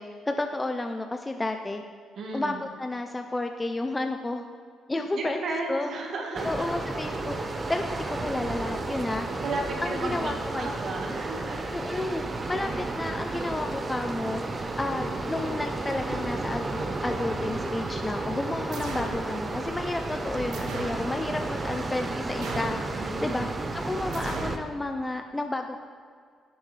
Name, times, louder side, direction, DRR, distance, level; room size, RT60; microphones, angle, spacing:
voice 1, 0.0-1.8 2.3-4.5 4.9-5.9 6.4-9.3 9.8-10.7 11.7-23.5 23.7-25.8, left 2 dB, 15° left, 5 dB, 0.6 m, -31 dB
voice 2, 2.2-2.6 5.1-6.7 9.4-11.7 14.9-15.1 23.0-23.6, right 2 dB, 60° right, 0 dB, 1.7 m, -34 dB
sound 1, 6.3-24.6, right 2 dB, 30° right, 0.9 m, -32 dB
sound 2, 18.7-19.2 20.5-21.1 22.4-22.9 24.1-24.6, right 3 dB, 80° right, 1.5 m, -37 dB
17.0 x 7.0 x 3.4 m, 2.1 s
cardioid pair, 90°, 0 cm